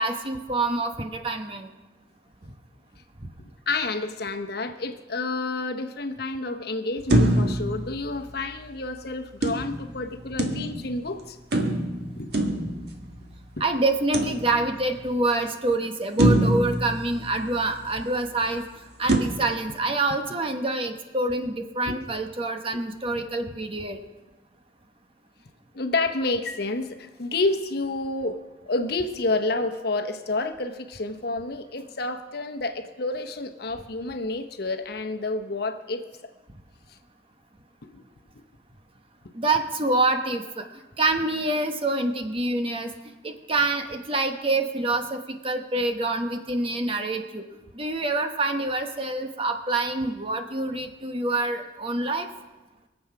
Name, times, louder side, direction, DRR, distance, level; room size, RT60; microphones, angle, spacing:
voice 1, 0.0-1.7 13.6-18.6 19.0-24.0 39.3-40.6 41.0-42.9 43.2-47.5 47.7-52.3, right 2 dB, 30° right, 6 dB, 1.1 m, -26 dB
voice 2, 3.7-11.4 12.1-12.3 13.2-13.3 13.6-13.7 21.8-22.0 25.7-28.4 28.6-36.0 37.8-38.0, left 2 dB, 60° left, 6 dB, 1.0 m, -29 dB
sound 1, 7.1-8.7 9.4-11.0 11.5-13.4 14.1-15.0 15.5-15.6 16.2-17.9 19.1-19.2, right 1 dB, 60° right, 1.7 m, -25 dB
23.5 x 8.0 x 5.9 m, 1.1 s
head